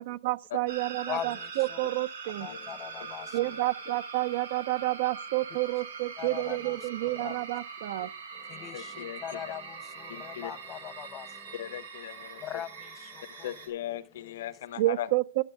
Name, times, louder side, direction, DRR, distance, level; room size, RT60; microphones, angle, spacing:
voice 1, 0.0-2.5 3.3-8.1 14.8-15.4, right 19 dB, 60° right, 0.4 m, -30 dB
sound 1, 0.7-13.7, right 5 dB, 90° right, 3.1 m, -42 dB
voice 2, 1.1-1.8 2.4-3.5 6.2-7.4 8.3-11.7 12.2-13.5 14.2-14.6, left 10 dB, 25° left, 0.6 m, -41 dB
voice 3, 8.7-9.5 10.1-10.5 11.5-12.4 13.4-15.1, left 12 dB, 65° left, 0.7 m, -38 dB
11.5 x 6.4 x 6.5 m
hypercardioid pair, 140°, 0 cm